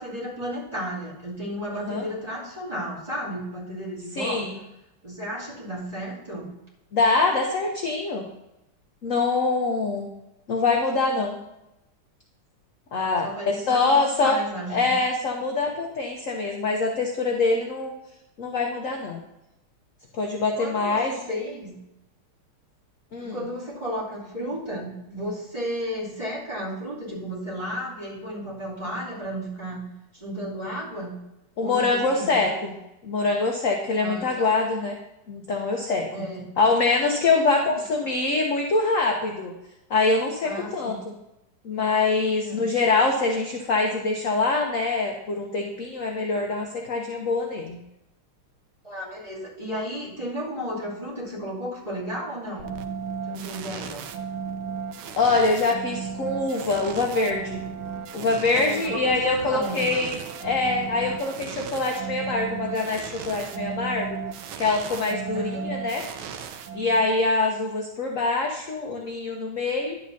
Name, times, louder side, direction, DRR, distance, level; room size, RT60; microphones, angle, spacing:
voice 1, 0.0-4.5 5.0-6.5 13.2-15.0 20.6-21.9 23.2-29.8 30.1-31.1 31.6-32.5 34.0-34.5 36.1-36.6 37.3-37.7 38.0-38.1 40.4-41.0 42.4-42.6 48.8-52.7 53.3-54.0 58.5-60.1 65.3-65.8, equal, 15° right, -8 dB, 2.8 m, -33 dB
voice 2, 1.7-2.0 4.2-4.6 6.9-8.2 9.0-10.1 10.5-11.4 12.9-14.4 14.7-17.9 18.4-19.2 20.1-21.1 23.1-23.5 31.6-32.7 33.0-35.0 35.3-36.1 36.6-39.5 39.9-41.0 41.6-47.8 55.2-57.6 58.1-64.2 64.6-66.0 66.7-70.0, left 3 dB, 55° left, 1 dB, 0.9 m, -24 dB
sound 1, 52.6-67.2, right 7 dB, 80° right, 1.5 m, -35 dB
11.0 x 8.4 x 2.7 m, 0.90 s
omnidirectional pair, 2.3 m